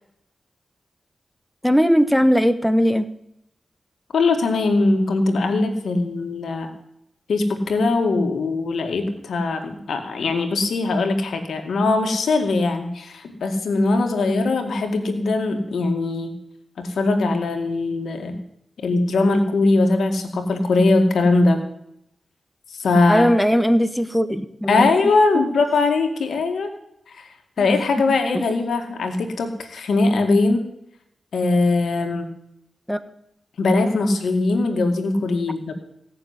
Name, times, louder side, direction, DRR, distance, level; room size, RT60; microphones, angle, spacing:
voice 1, 1.6-3.1 23.1-24.9 25.3-25.4 27.6-27.7 28.3-28.4 32.9-33.0, equal, ahead, 11 dB, 1.2 m, -19 dB
voice 2, 4.1-6.7 7.3-16.3 16.8-18.4 18.8-21.7 22.7-23.3 24.7-26.7 27.1-27.3 27.6-30.7 31.3-32.3 33.6-35.7, left 3 dB, 85° left, 5 dB, 2.2 m, -21 dB
16.5 x 6.9 x 9.7 m, 0.78 s
cardioid pair, 45°, 0 cm